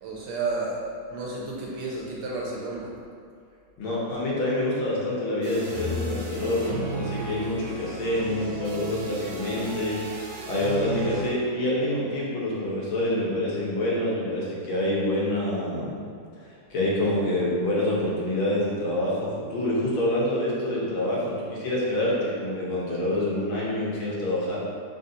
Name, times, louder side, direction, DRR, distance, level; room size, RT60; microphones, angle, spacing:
voice 1, 0.0-0.8 1.1-2.9, right 3 dB, 85° right, -3 dB, 1.7 m, -31 dB
voice 2, 3.8-16.0 16.7-24.6, left 1 dB, 75° left, -6 dB, 1.7 m, -27 dB
sound 1, 5.4-11.3, right 2 dB, 70° right, 1.3 m, -35 dB
4.1 x 3.7 x 2.7 m, 2.2 s
omnidirectional pair, 2.3 m